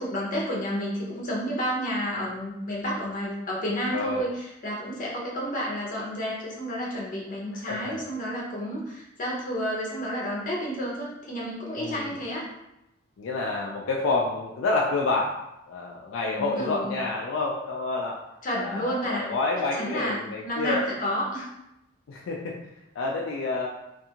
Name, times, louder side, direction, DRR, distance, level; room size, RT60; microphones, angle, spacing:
voice 1, 0.0-12.5 16.3-16.9 18.4-19.2 19.7-21.5, equal, 40° left, -4 dB, 0.7 m, -30 dB
voice 2, 3.9-4.2 7.5-8.0 11.8-12.2 13.2-15.4 15.7-18.2 18.6-20.8 22.1-22.5 22.9-23.7, left 3 dB, 70° left, -2 dB, 0.3 m, -28 dB
2.6 x 2.4 x 2.8 m, 0.86 s
head